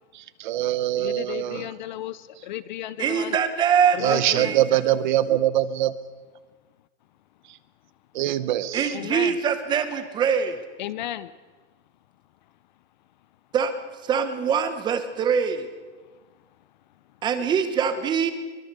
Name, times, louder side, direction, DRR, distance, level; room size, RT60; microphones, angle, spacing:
voice 1, 0.4-1.7 4.0-5.9 8.1-8.9, right 13 dB, 45° right, 15 dB, 0.9 m, -23 dB
voice 2, 0.9-3.4 3.9-4.6 8.9-9.4 10.8-11.3, left 13 dB, 40° left, 16 dB, 0.7 m, -34 dB
voice 3, 3.0-4.8 8.7-10.6 13.5-13.7 14.0-15.7 17.2-18.3, right 7 dB, 15° right, 10 dB, 1.0 m, -23 dB
23.5 x 22.0 x 6.7 m, 1.4 s
supercardioid pair, 170°, 35 cm